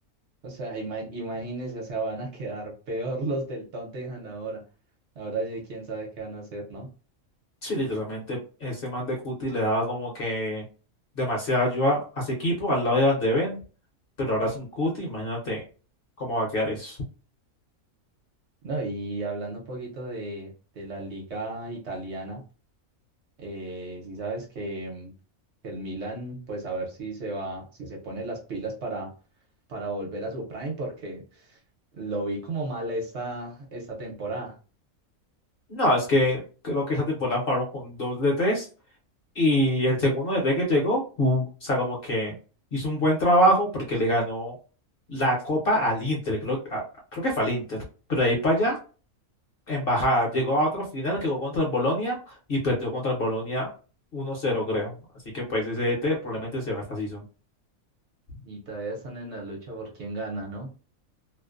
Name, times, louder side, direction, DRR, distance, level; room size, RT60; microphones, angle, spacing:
voice 1, 0.4-4.6 5.2-6.9 18.6-22.4 23.4-25.1 25.6-29.1 29.7-31.6 32.0-34.6 58.4-60.7, right 2 dB, 60° right, -1 dB, 0.9 m, -34 dB
voice 2, 7.6-10.6 11.2-13.6 14.2-15.6 16.2-17.0 35.7-38.7 39.4-42.3 42.7-44.6 45.1-46.8 47.1-47.8 48.1-48.8 49.7-53.7 54.1-54.9 55.3-57.2, left 1 dB, 50° left, -1 dB, 0.8 m, -25 dB
2.5 x 2.1 x 2.4 m, 0.36 s
omnidirectional pair, 1.5 m